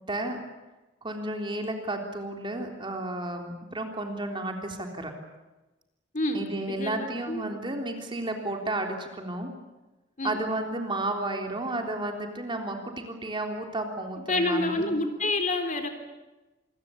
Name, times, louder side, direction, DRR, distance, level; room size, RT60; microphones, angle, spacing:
voice 1, 0.1-0.4 1.0-5.1 6.3-9.5 10.2-14.9, right 2 dB, 25° right, 3 dB, 3.5 m, -32 dB
voice 2, 6.1-7.4 10.2-10.4 14.3-15.9, left 2 dB, 40° left, 6 dB, 3.7 m, -28 dB
27.0 x 22.5 x 8.6 m, 1.1 s
head